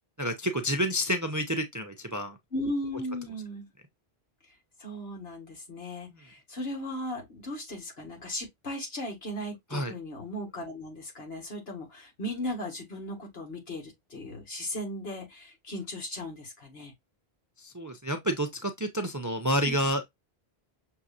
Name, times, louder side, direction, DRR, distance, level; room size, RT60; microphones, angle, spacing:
voice 1, 0.2-2.4 9.7-9.9 17.6-20.1, equal, 25° right, 0.4 m, -29 dB
voice 2, 2.5-3.7 4.8-16.9 19.7-19.8, left 1 dB, 80° left, 2.0 m, -37 dB
6.1 x 2.7 x 2.3 m
omnidirectional pair, 1.0 m